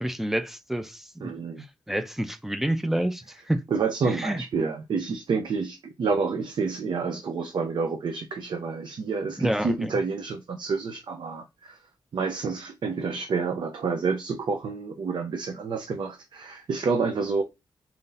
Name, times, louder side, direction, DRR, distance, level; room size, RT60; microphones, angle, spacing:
voice 1, 0.0-1.3 1.9-3.6 4.0-4.4 9.4-9.9, right 1 dB, 5° right, 0.4 m, -28 dB
voice 2, 1.2-1.6 3.7-11.8 12.1-17.4, right 4 dB, 70° right, 0.6 m, -29 dB
4.2 x 2.7 x 3.9 m
wide cardioid pair, 140°, 8 cm